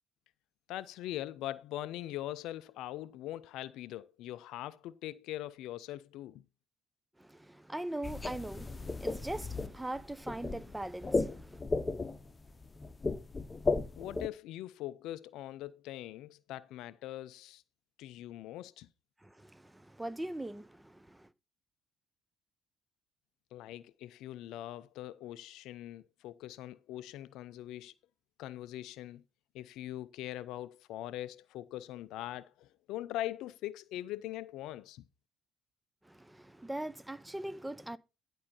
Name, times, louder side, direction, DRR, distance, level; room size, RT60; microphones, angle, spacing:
voice 1, 0.7-6.4 14.0-17.6 18.0-18.9 23.5-27.9 28.4-29.2 29.5-35.1, left 14 dB, 65° left, 0.5 m, -42 dB
voice 2, 7.2-11.6 19.2-21.3 36.0-38.0, right 1 dB, 10° right, 0.8 m, -41 dB
sound 1, 8.0-14.3, left 3 dB, 25° left, 1.1 m, -35 dB
11.0 x 5.4 x 5.4 m
figure-of-eight pair, 50°, 0 cm